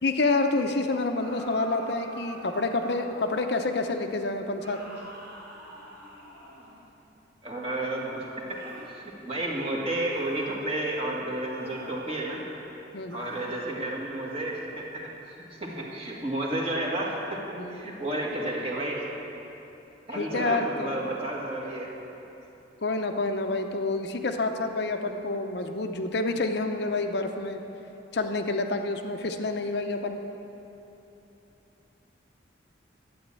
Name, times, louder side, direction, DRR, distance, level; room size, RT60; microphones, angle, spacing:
voice 1, 0.0-5.0 12.9-13.3 17.6-17.9 20.1-21.0 22.8-27.6 28.1-30.2, left 3 dB, 60° left, 5 dB, 0.7 m, -28 dB
sound 1, 1.2-3.5 4.6-6.9 8.5-8.9 10.1-10.5 11.5-12.0 13.1-13.6, equal, 65° right, 3.6 m, -45 dB
voice 2, 7.4-12.4 13.1-19.1 20.1-21.9, right 1 dB, 30° right, -3 dB, 1.9 m, -32 dB
12.0 x 8.8 x 7.5 m, 3.0 s
head